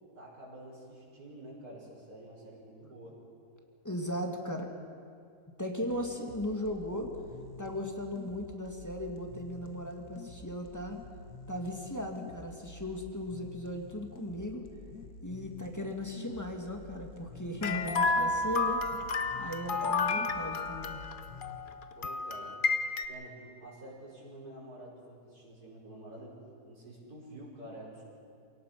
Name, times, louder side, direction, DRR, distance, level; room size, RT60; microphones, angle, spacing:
voice 1, 0.1-3.2 22.0-22.6 23.1-26.4 26.7-28.0, right 1 dB, 70° right, -4 dB, 5.8 m, -48 dB
voice 2, 3.8-4.7 5.6-7.1 7.6-11.0 11.5-14.7 15.2-18.8 19.4-21.0, left 1 dB, 10° left, 2 dB, 1.9 m, -37 dB
sound 1, 5.8-21.6, left 3 dB, 75° left, 1.8 m, -49 dB
sound 2, 17.6-23.1, left 3 dB, 40° left, 0.8 m, -31 dB
27.0 x 18.0 x 5.9 m, 2.4 s
omnidirectional pair, 1.7 m